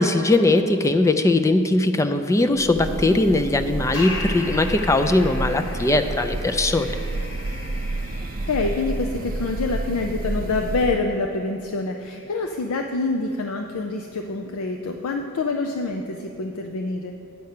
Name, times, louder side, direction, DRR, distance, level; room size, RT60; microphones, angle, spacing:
voice 1, 0.0-7.0, left 2 dB, 15° left, 8 dB, 0.3 m, -20 dB
Breathing / Bird, 2.6-11.1, right 2 dB, 40° right, 0.5 m, -30 dB
sound 1, 3.9-15.9, left 2 dB, 60° left, 1.3 m, -40 dB
voice 2, 8.5-17.1, left 3 dB, 80° left, 3 dB, 0.5 m, -26 dB
9.4 x 5.6 x 6.6 m, 2.7 s
head